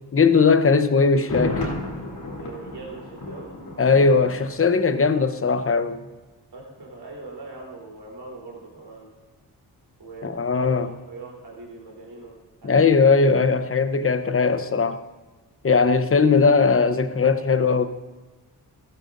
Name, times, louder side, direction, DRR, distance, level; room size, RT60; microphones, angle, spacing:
voice 1, 0.1-1.7 3.8-6.1 10.2-10.9 12.6-15.0 15.6-17.9, left 4 dB, 35° left, 0.9 m, -19 dB
Thunder, 1.1-5.0 5.3-5.4, left 2 dB, 65° left, 3.3 m, -33 dB
voice 2, 2.4-3.6 6.5-9.1 10.0-12.4 12.6-13.0, right 3 dB, 70° right, 3.7 m, -41 dB
15.0 x 14.0 x 2.6 m
cardioid pair, 50°, 40 cm